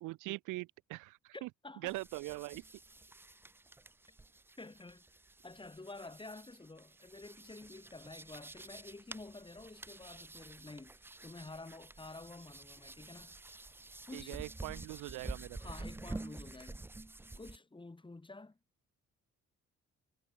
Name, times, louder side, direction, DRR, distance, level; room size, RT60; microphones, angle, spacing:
voice 1, 0.0-1.5 1.8-2.6 14.1-15.6, right 20 dB, 90° right, 0.5 m, -42 dB
voice 2, 1.3-2.0 4.6-5.1 5.4-13.3 14.1-14.4 15.6-16.8 17.4-18.6, left 2 dB, 15° left, 2.6 m, -50 dB
sound 1, 1.9-17.6, right 2 dB, 10° right, 0.4 m, -49 dB
cardioid pair, 90°, 30 cm